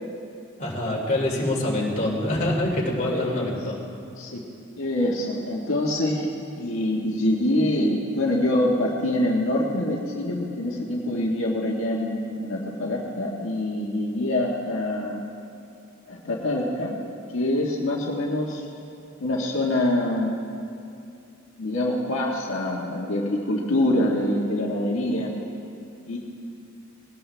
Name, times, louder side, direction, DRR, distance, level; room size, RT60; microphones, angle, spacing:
voice 1, 0.6-3.8, left 1 dB, 35° left, -3 dB, 3.0 m, -25 dB
voice 2, 3.1-3.5 4.2-4.4 4.8-6.3 6.6-15.2 16.1-16.9 17.3-18.7 19.2-20.4 21.6-25.3 26.1-26.2, left 1 dB, 70° left, -3 dB, 1.6 m, -25 dB
21.5 x 17.5 x 3.4 m, 2.6 s
head